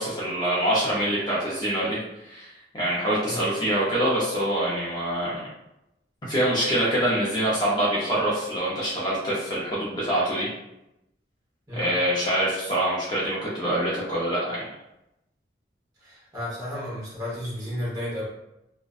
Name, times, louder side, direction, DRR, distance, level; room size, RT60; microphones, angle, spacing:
voice 1, 0.0-5.4 6.3-10.5 11.7-14.7, right 1 dB, 25° left, -7 dB, 0.5 m, -25 dB
voice 2, 16.0-18.3, left 1 dB, 20° right, -8 dB, 0.9 m, -33 dB
2.5 x 2.1 x 2.4 m, 0.89 s
head